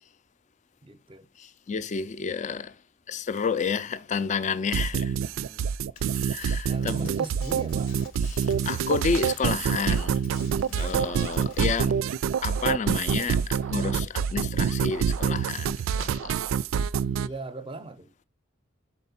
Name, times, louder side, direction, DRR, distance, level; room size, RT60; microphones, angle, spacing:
voice 1, 0.8-1.3 5.1-5.7 6.7-8.0 10.7-11.5 17.2-18.1, right 2 dB, 25° right, 0.6 m, -40 dB
voice 2, 1.4-2.8 3.1-5.2 6.2-7.1 8.2-10.2 10.6-12.0 12.4-16.5, left 5 dB, 35° left, 0.4 m, -30 dB
sound 1, 4.7-17.3, right 7 dB, 85° right, 0.3 m, -26 dB
sound 2, 6.0-11.9, left 5 dB, 85° left, 1.5 m, -50 dB
5.2 x 4.2 x 5.6 m
head